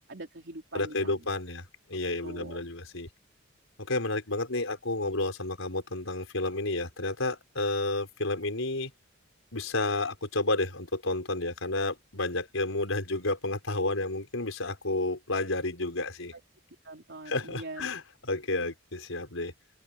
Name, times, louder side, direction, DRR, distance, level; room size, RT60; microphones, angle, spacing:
voice 1, 0.1-1.3 2.2-2.6 16.3-16.4 16.8-17.9, right 2 dB, 60° right, 3.7 m, -43 dB
voice 2, 0.7-3.1 3.8-8.9 9.5-16.3 17.3-19.5, left 2 dB, 85° left, 4.8 m, -31 dB
open air
head